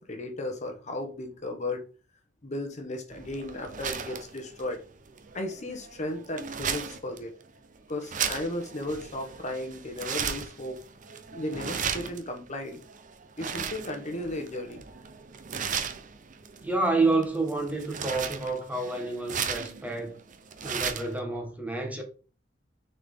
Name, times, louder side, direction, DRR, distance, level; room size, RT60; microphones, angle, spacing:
voice 1, 0.0-1.8 2.4-4.8 5.3-7.3 7.9-10.8 11.3-12.8 13.4-14.8, left 1 dB, 40° left, 1.0 m, -35 dB
sound 1, 3.1-21.2, right 7 dB, 45° right, 0.7 m, -36 dB
voice 2, 16.6-20.1 20.6-22.0, right 3 dB, 10° right, 1.2 m, -29 dB
6.5 x 4.2 x 3.7 m
head